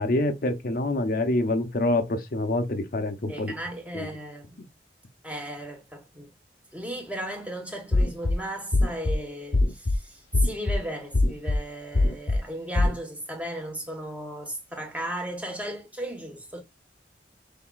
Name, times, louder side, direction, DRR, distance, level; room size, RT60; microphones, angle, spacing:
voice 1, 0.0-3.5 3.9-4.1, left 2 dB, 55° left, 0.7 m, -26 dB
voice 2, 3.3-4.6 5.2-6.3 6.7-16.6, right 1 dB, 10° right, 1.1 m, -36 dB
sound 1, 7.9-8.3 8.7-9.1 9.5-10.0 10.3-10.8 11.1-11.6 11.9-12.4 12.7-12.9, left 2 dB, 85° left, 0.8 m, -21 dB
5.6 x 3.6 x 2.3 m
head